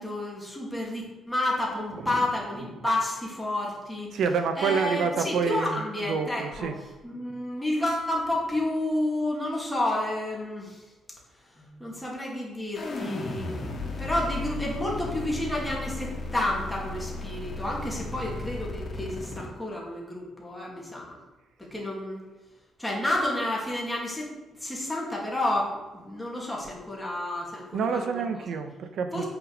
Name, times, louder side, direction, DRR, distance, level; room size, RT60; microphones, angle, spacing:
voice 1, 0.0-4.2 4.5-6.7 7.0-10.8 11.5-21.2 21.6-22.2 22.8-24.3 24.6-28.3 29.1-29.3, left 1 dB, 5° left, -3 dB, 2.6 m, -30 dB
voice 2, 4.1-5.8 6.1-6.7 27.7-29.2, right 6 dB, 60° right, 7 dB, 1.2 m, -27 dB
sound 1, 12.7-19.5, left 3 dB, 30° left, 2.5 m, -35 dB
8.6 x 6.8 x 6.6 m, 1.2 s
cardioid pair, 165°, 0 cm